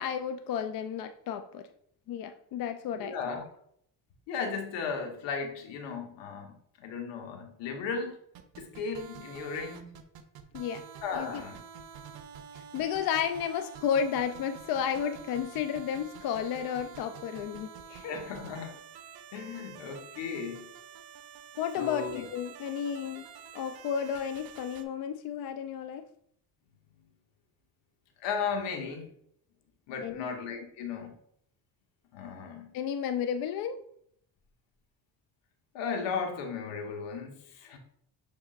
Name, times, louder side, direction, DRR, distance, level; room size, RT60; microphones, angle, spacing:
voice 1, 0.0-1.7 2.1-3.4 10.5-10.8 11.1-11.3 12.5-18.1 21.6-23.3 23.5-26.1 30.0-30.4 32.7-33.8, left 8 dB, 55° left, 8 dB, 0.5 m, -32 dB
voice 2, 2.9-3.4 4.3-8.2 8.6-10.0 11.0-11.6 18.0-18.7 19.3-20.7 21.8-22.3 28.2-29.1 29.9-31.2 32.1-32.7 35.7-37.8, left 5 dB, 80° left, 3 dB, 1.2 m, -35 dB
sound 1, 8.4-24.8, right 7 dB, 55° right, 0.7 m, -48 dB
6.4 x 3.4 x 2.4 m, 0.70 s
supercardioid pair, 90°, 44 cm